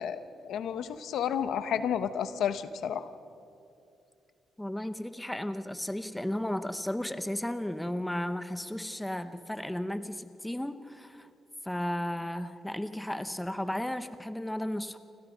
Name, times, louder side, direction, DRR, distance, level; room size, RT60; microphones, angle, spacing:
voice 1, 0.0-3.1, left 8 dB, 80° left, 11 dB, 1.1 m, -31 dB
voice 2, 4.6-11.3 11.6-15.0, left 1 dB, 5° left, 10 dB, 0.8 m, -34 dB
29.0 x 25.5 x 5.3 m, 2.6 s
cardioid pair, 160°, 0 cm